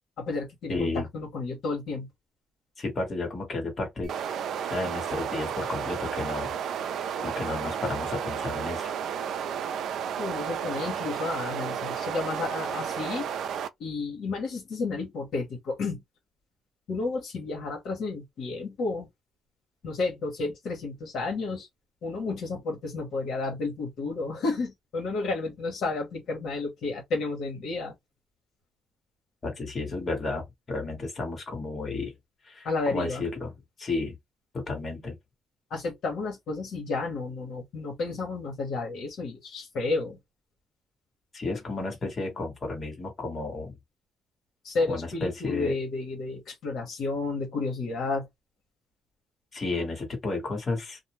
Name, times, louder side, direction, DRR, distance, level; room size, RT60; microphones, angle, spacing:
voice 1, 0.2-2.1 10.2-13.3 13.8-16.0 16.9-19.1 19.8-21.7 22.0-27.9 32.6-33.2 35.7-40.2 44.6-48.3, left 3 dB, 70° left, 1.1 m, -31 dB
voice 2, 0.7-1.1 2.8-4.1 4.7-6.5 7.2-8.9 29.4-32.1 32.4-33.5 33.8-34.2 34.5-35.2 41.3-43.8 44.9-45.7 49.5-51.0, left 3 dB, 40° left, 1.3 m, -32 dB
sound 1, 4.0-13.7, right 8 dB, 70° right, 0.3 m, -32 dB
2.5 x 2.0 x 2.9 m
cardioid pair, 85°, 0 cm